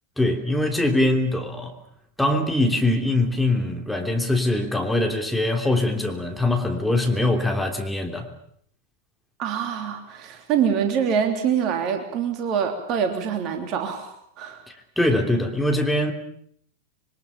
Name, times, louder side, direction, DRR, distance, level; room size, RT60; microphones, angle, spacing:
voice 1, 0.2-1.7 2.2-8.3 15.0-16.1, left 1 dB, 5° left, 3 dB, 3.2 m, -22 dB
voice 2, 9.4-14.6, right 7 dB, 40° right, 5 dB, 3.2 m, -25 dB
26.0 x 23.5 x 7.2 m, 0.66 s
figure-of-eight pair, 90°, 0 cm